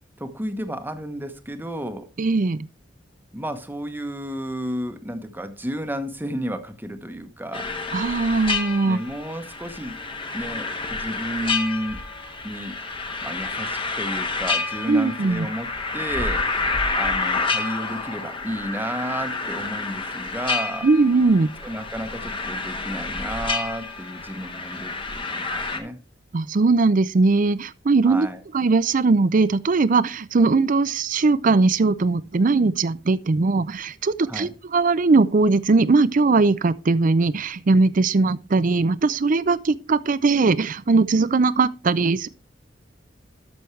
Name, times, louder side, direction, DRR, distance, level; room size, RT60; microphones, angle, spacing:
voice 1, 0.2-2.1 3.3-7.7 8.8-10.0 10.3-12.0 12.4-12.8 13.2-15.7 15.9-20.9 21.6-26.0 28.0-28.4 34.3-34.5, equal, 10° right, 1.0 m, -32 dB
voice 2, 2.2-2.7 7.9-9.0 14.9-15.5 20.8-21.5 26.3-28.3 28.5-42.3, right 3 dB, 45° right, 0.5 m, -20 dB
sound 1, 7.5-25.8, left 3 dB, 30° left, 1.2 m, -29 dB
12.5 x 6.2 x 3.2 m
head